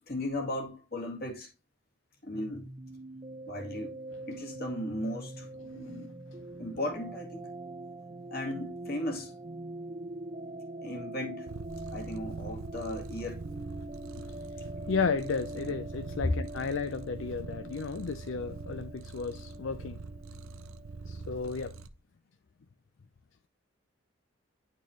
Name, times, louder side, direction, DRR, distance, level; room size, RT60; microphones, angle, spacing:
voice 1, 0.0-1.5 2.2-2.7 3.5-3.9 4.3-5.5 5.8-6.2 6.6-7.5 8.3-9.4 10.8-11.5 11.9-13.4 15.6-15.7 16.2-16.4, left 1 dB, 50° left, 2.0 m, -36 dB
sound 1, 2.3-21.8, right 1 dB, 25° right, 0.4 m, -44 dB
Purr, 11.5-21.9, right 4 dB, 90° right, 0.6 m, -44 dB
voice 2, 14.9-20.0 21.1-21.8, left 5 dB, 70° left, 0.5 m, -33 dB
10.0 x 4.4 x 3.1 m
head